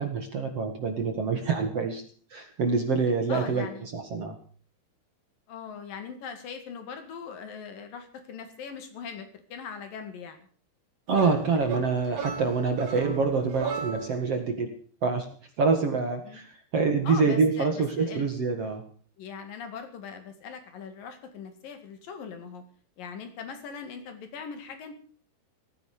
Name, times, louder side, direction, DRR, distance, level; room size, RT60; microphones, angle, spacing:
voice 1, 0.0-2.0 2.3-4.4 11.1-15.3 15.6-18.8, right 4 dB, 45° right, 5 dB, 2.4 m, -26 dB
voice 2, 3.3-3.9 5.5-10.5 16.2-16.4 17.1-18.3 19.2-22.6 23.0-24.9, left 6 dB, 60° left, 8 dB, 3.6 m, -40 dB
sound 1, 11.1-14.3, right 6 dB, 85° right, 4.3 m, -36 dB
17.5 x 15.0 x 4.9 m, 0.44 s
omnidirectional pair, 4.7 m